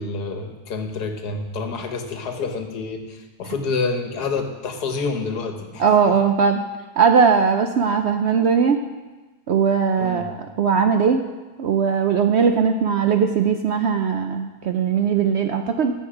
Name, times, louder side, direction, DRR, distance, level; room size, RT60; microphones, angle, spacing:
voice 1, 0.0-5.8 10.0-10.3, left 4 dB, 85° left, 5 dB, 1.7 m, -28 dB
voice 2, 5.8-6.6 7.0-8.8 9.5-11.2 11.6-15.9, right 6 dB, 65° right, 6 dB, 0.7 m, -19 dB
14.5 x 7.1 x 4.9 m, 1.2 s
omnidirectional pair, 1.6 m